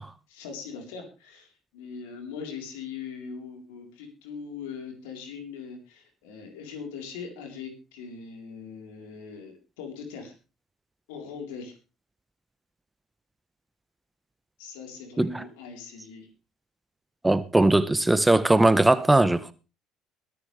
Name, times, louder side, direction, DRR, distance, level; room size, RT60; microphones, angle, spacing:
voice 1, 0.3-10.3 11.1-11.7 14.6-16.3, left 6 dB, 75° left, 4.0 m, -40 dB
voice 2, 17.2-19.5, right 2 dB, 10° right, 1.1 m, -20 dB
22.5 x 9.9 x 3.4 m
hypercardioid pair, 60°, 0 cm